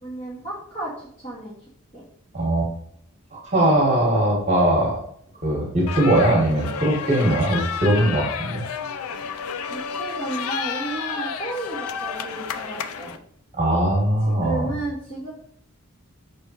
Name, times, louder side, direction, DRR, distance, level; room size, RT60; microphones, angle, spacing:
voice 1, 0.0-1.5 1.9-2.1 9.7-13.2 14.3-15.3, right 2 dB, 30° left, -8 dB, 1.5 m, -33 dB
voice 2, 2.3-2.7 3.3-5.0 5.4-8.6 13.5-14.7, right 1 dB, 30° right, -3 dB, 1.4 m, -20 dB
sound 1, 5.9-13.2, left 7 dB, 80° left, 0.4 m, -31 dB
5.4 x 3.3 x 2.9 m, 0.65 s
head